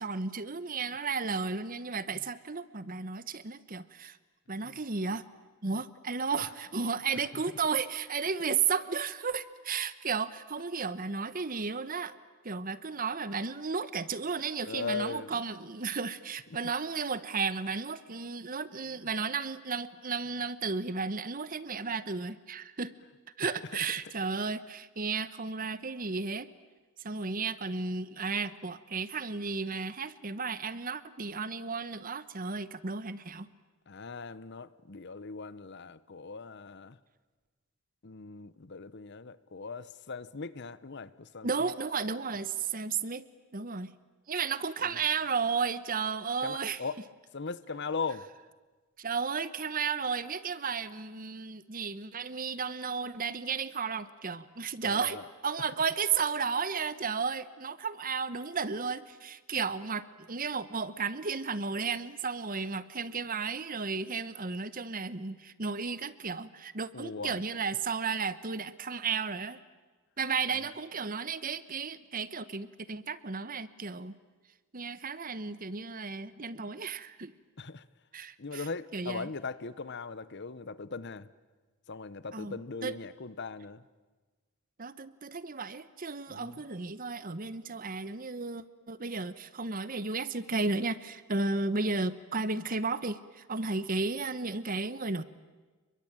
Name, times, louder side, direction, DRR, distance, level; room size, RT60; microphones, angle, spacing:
voice 1, 0.0-4.2 4.5-5.2 5.6-12.1 12.4-22.9 23.4-26.5 27.0-33.5 41.4-43.3 43.5-43.9 44.3-46.8 49.0-69.6 70.2-74.1 74.7-77.3 78.1-78.6 78.9-79.3 82.3-83.0 84.8-95.2, right 5 dB, 40° right, 1.0 m, -33 dB
voice 2, 7.1-7.6 14.6-15.4 23.4-23.6 33.9-37.0 38.0-41.7 44.8-45.0 46.4-47.0 47.3-48.3 54.8-55.3 66.9-67.4 70.6-70.7 77.6-77.9 78.4-81.3 81.9-83.8 86.3-86.6, left 4 dB, 50° left, 0.8 m, -39 dB
29.5 x 22.5 x 8.9 m
head